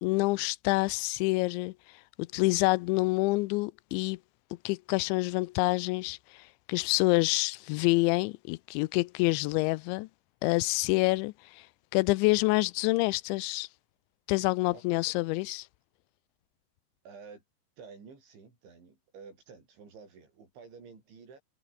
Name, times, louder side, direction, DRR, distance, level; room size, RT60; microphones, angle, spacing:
voice 1, 0.0-1.7 2.2-4.2 4.7-10.1 10.4-11.7 11.9-13.7 14.3-15.7, left 23 dB, 90° left, 2.9 m, -27 dB
voice 2, 14.7-15.2 17.1-17.4 17.8-21.4, right 5 dB, 90° right, 9.2 m, -51 dB
omnidirectional pair, 5.2 m